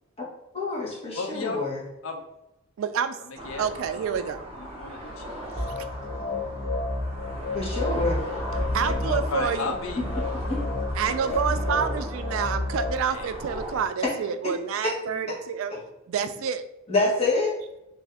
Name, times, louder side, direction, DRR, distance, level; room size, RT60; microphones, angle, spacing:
voice 1, 0.5-1.8 7.5-8.2 10.5-10.6 14.8-14.9 15.3-15.4 15.7-15.8 16.9-17.6, left 3 dB, 30° left, -5 dB, 1.1 m, -26 dB
voice 2, 1.1-1.6 2.0-2.2 3.2-3.7 4.1-4.3 4.5-5.7 8.6-10.2 13.1-13.3 14.2-14.3 15.1-15.3 16.9-17.0, left 3 dB, 70° left, 3 dB, 0.6 m, -35 dB
voice 3, 2.8-3.2 3.6-4.4 8.7-9.7 11.0-15.7 16.1-16.6, right 7 dB, 70° right, 10 dB, 0.3 m, -28 dB
sound 1, 3.4-13.8, equal, 25° right, 1.1 m, -38 dB
sound 2, 5.5-12.9, left 2 dB, 5° left, 0.9 m, -30 dB
3.5 x 2.6 x 3.4 m, 0.89 s
head